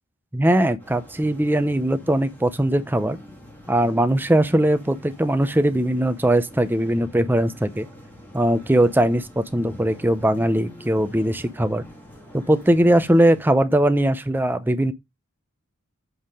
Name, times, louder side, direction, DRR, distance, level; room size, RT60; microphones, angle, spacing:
voice 1, 0.3-3.2 3.7-7.9 8.3-11.8 12.3-14.9, right 1 dB, 10° right, 0.5 m, -20 dB
sound 1, 0.8-13.4, left 1 dB, 10° left, 1.6 m, -45 dB
7.9 x 3.6 x 4.8 m
head